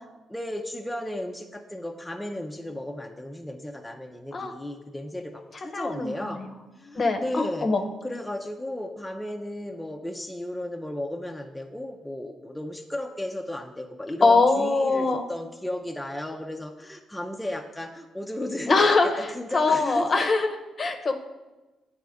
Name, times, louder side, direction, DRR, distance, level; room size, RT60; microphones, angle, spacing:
voice 1, 0.3-6.4 6.7-7.7 8.0-20.3, left 1 dB, 5° left, 2 dB, 0.5 m, -34 dB
voice 2, 5.7-6.4 6.9-7.8 14.2-15.2 18.7-19.3 19.5-21.2, left 3 dB, 40° left, 6 dB, 0.7 m, -22 dB
9.1 x 4.2 x 3.5 m, 1.1 s
cardioid pair, 90°, 0 cm